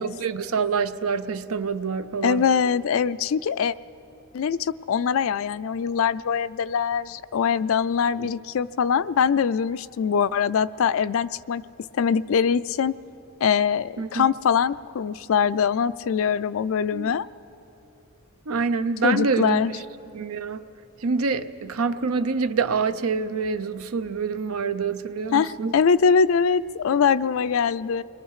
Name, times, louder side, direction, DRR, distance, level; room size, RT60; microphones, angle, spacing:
voice 1, 0.0-2.5 8.2-8.3 14.0-14.3 16.9-17.1 18.5-19.7 20.1-20.6 21.0-25.7, right 5 dB, 90° right, 0.6 m, -26 dB
voice 2, 2.2-3.7 4.3-11.6 11.9-12.9 13.4-17.3 19.0-19.7 25.3-28.0, left 6 dB, 65° left, 0.4 m, -23 dB
29.5 x 22.0 x 4.8 m
head